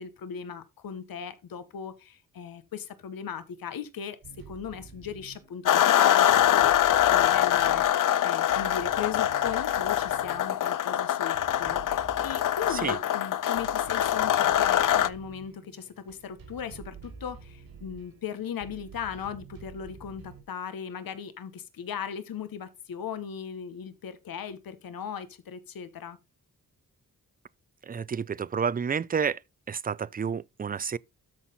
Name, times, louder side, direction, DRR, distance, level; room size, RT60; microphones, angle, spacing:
voice 1, 0.0-6.7 7.1-26.2, left 7 dB, 80° left, 1.1 m, -38 dB
sound 1, 4.2-20.4, right 6 dB, 85° right, 4.5 m, -48 dB
sound 2, 5.7-15.1, left 11 dB, 65° left, 0.5 m, -24 dB
voice 2, 27.8-29.4 29.7-31.0, right 6 dB, 25° right, 0.4 m, -30 dB
13.0 x 4.3 x 4.0 m
cardioid pair, 55°, 34 cm